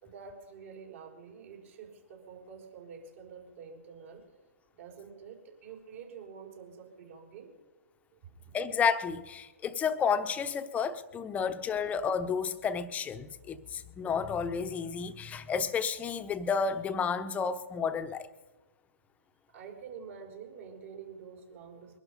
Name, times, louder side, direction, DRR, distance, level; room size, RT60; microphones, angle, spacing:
voice 1, 0.0-4.3 4.7-7.5 8.1-8.6 13.3-13.5 19.5-22.0, right 6 dB, 55° right, 4.9 m, -48 dB
voice 2, 8.5-18.3, left 6 dB, 15° left, 0.9 m, -31 dB
22.0 x 11.5 x 5.4 m
hypercardioid pair, 125°, 9 cm